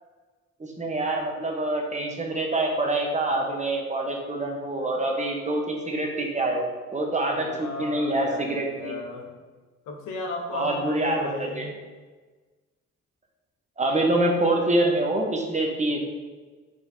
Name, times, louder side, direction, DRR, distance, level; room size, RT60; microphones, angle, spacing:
voice 1, 0.6-6.7 6.9-8.9 10.5-11.7 13.8-16.1, right 2 dB, 25° right, 1 dB, 0.9 m, -26 dB
voice 2, 7.3-9.3 9.9-11.7, left 2 dB, 85° left, 1 dB, 0.8 m, -35 dB
4.6 x 4.0 x 2.7 m, 1.3 s
cardioid pair, 70°, 30 cm